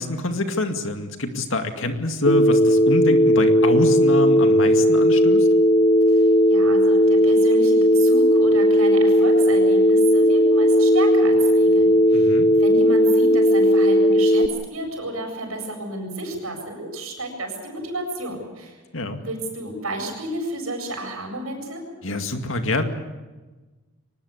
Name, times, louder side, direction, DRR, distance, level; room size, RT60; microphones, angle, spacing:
voice 1, 0.0-5.5 12.1-12.5 18.9-19.2 22.0-22.8, left 1 dB, 65° left, 6 dB, 2.3 m, -26 dB
Telephone, 2.3-14.5, equal, 40° left, 0.9 m, -16 dB
voice 2, 6.1-14.4 14.7-18.8 19.2-21.8, right 1 dB, 80° right, 3 dB, 7.7 m, -32 dB
23.5 x 20.0 x 8.3 m, 1.2 s
head